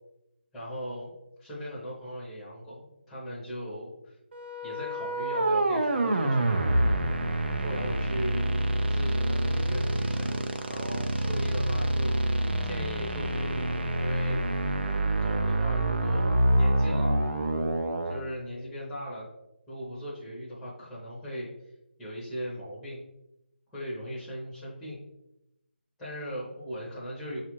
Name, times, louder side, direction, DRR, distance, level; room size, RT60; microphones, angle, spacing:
voice 1, 0.5-1.1 1.4-4.2 4.6-6.7 7.5-8.5 8.9-14.4 15.2-17.4 18.0-19.3 19.7-21.5 22.0-23.0 23.7-25.0 26.0-27.4, equal, ahead, -9 dB, 0.7 m, -38 dB
sound 1, 4.3-18.2, right 1 dB, 65° right, 0.5 m, -27 dB
5.5 x 2.4 x 2.9 m, 0.87 s
figure-of-eight pair, 165°, 6 cm